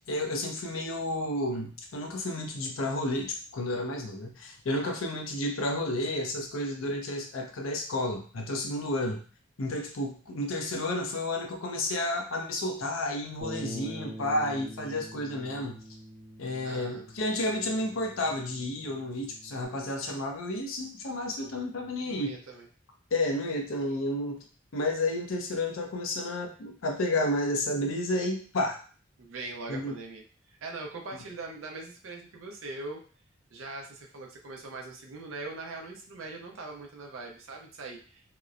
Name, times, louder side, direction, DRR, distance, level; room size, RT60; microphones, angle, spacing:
voice 1, 0.1-9.2 9.6-15.8 16.4-22.4 23.1-24.4 24.7-28.8 29.7-29.9, left 1 dB, 85° left, 2 dB, 0.6 m, -31 dB
voice 2, 4.7-5.0 16.6-17.0 22.0-22.7 29.2-33.0 33.5-38.3, right 3 dB, 90° right, 1 dB, 0.5 m, -41 dB
Bass guitar, 13.4-19.7, right 1 dB, 15° left, 0.5 m, -45 dB
2.9 x 2.0 x 2.4 m, 0.40 s
head